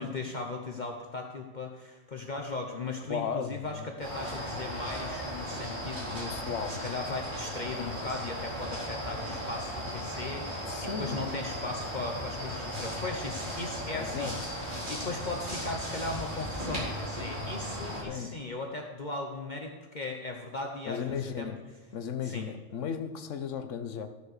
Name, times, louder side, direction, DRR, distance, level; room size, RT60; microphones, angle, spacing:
voice 1, 0.0-14.3 14.9-21.5 22.2-22.5, left 3 dB, 40° left, 2 dB, 1.0 m, -38 dB
voice 2, 3.1-3.9 6.3-6.8 10.6-11.3 14.0-14.3 18.1-18.3 20.9-21.6 21.9-24.1, left 7 dB, 80° left, 8 dB, 1.3 m, -35 dB
sound 1, 4.0-18.0, equal, 40° right, 4.1 m, -36 dB
13.5 x 6.8 x 6.6 m, 1.2 s
omnidirectional pair, 1.3 m